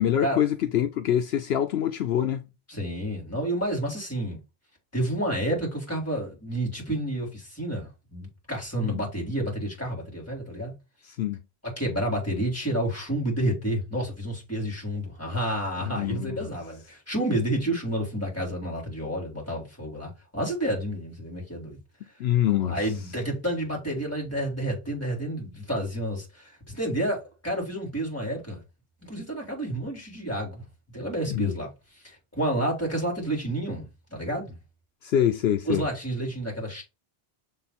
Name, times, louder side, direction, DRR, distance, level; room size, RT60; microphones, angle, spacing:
voice 1, 0.0-2.5 8.8-9.0 11.0-11.4 15.9-16.5 22.2-22.8 31.3-31.5 35.0-35.8, left 10 dB, 75° left, 0.9 m, -25 dB
voice 2, 2.7-4.4 4.9-10.7 11.6-21.8 22.7-28.6 29.0-31.7 32.0-34.6 35.7-36.8, right 1 dB, 15° left, 3.3 m, -30 dB
6.6 x 3.8 x 4.2 m
omnidirectional pair, 1.1 m